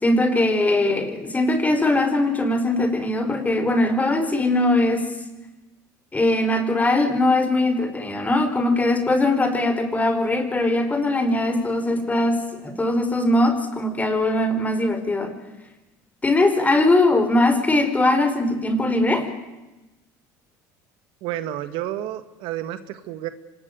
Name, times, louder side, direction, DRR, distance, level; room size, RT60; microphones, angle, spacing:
voice 1, 0.0-5.1 6.1-15.3 16.2-19.3, left 2 dB, 15° left, 8 dB, 4.8 m, -21 dB
voice 2, 21.2-23.3, right 13 dB, 70° right, 11 dB, 1.9 m, -30 dB
25.5 x 19.5 x 9.4 m, 1.1 s
supercardioid pair, 95°, 9 cm